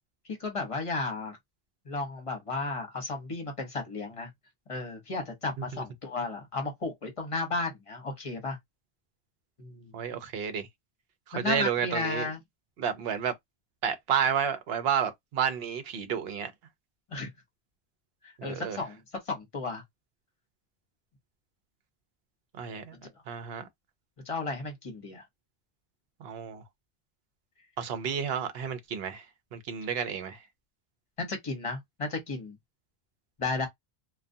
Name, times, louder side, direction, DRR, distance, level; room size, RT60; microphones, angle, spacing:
voice 1, 0.3-1.4 1.9-4.3 4.7-8.6 9.6-9.9 11.3-12.4 17.1-17.3 18.2-19.0 19.3-19.8 24.3-25.2 31.2-32.5 33.4-33.7, left 3 dB, 35° left, 0.9 m, -34 dB
voice 2, 9.9-10.7 11.3-12.3 12.8-13.3 13.8-16.5 18.4-18.8 22.6-23.0 23.3-23.7 26.2-26.6 27.8-29.2 29.5-30.4, right 7 dB, 75° right, 0.8 m, -31 dB
2.3 x 2.2 x 2.6 m
omnidirectional pair, 1.0 m